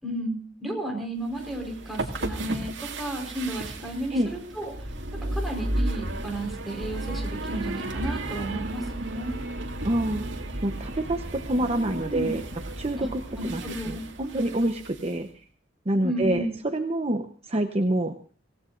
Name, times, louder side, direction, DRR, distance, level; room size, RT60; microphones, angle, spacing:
voice 1, 0.0-4.7 5.3-9.3 12.0-12.4 13.0-13.1 13.3-14.0 16.0-16.6, right 1 dB, ahead, -1 dB, 4.5 m, -33 dB
sound 1, 1.3-15.1, right 1 dB, 85° right, 2.1 m, -34 dB
voice 2, 9.8-10.2 10.6-12.4 12.8-15.3 15.9-18.1, right 1 dB, 35° right, 6 dB, 0.9 m, -27 dB
26.0 x 17.0 x 2.6 m, 0.39 s
head